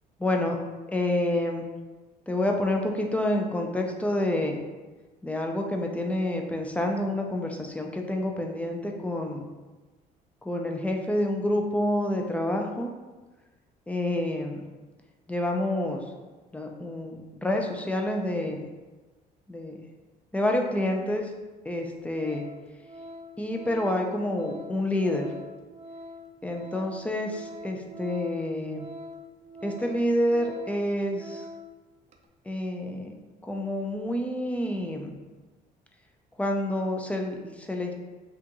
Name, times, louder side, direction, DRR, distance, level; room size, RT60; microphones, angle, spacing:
voice 1, 0.2-0.6 0.9-1.7 2.3-4.6 5.2-9.5 10.4-12.9 13.9-14.6 15.3-16.0 16.5-18.6 19.5-19.8 20.3-21.3 21.7-22.5 23.4-25.3 26.4-28.8 29.6-31.4 32.5-33.1 33.4-35.1 36.4-37.9, left 1 dB, 10° left, 2 dB, 0.5 m, -28 dB
Organ, 21.8-21.9 22.2-31.8 32.1-32.3, left 1 dB, 40° right, 0.5 m, -44 dB
5.8 x 2.5 x 3.0 m, 1.2 s
cardioid pair, 110°, 17 cm